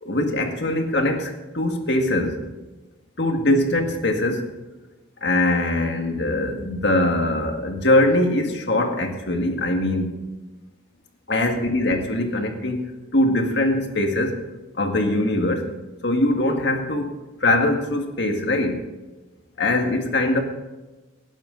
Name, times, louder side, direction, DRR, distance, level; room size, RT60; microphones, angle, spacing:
voice 1, 0.0-2.4 3.2-4.5 5.2-10.2 11.3-14.4 14.7-15.7 16.0-18.8 19.6-20.4, left 1 dB, 60° left, 4 dB, 1.9 m, -22 dB
19.0 x 11.5 x 4.0 m, 1.1 s
head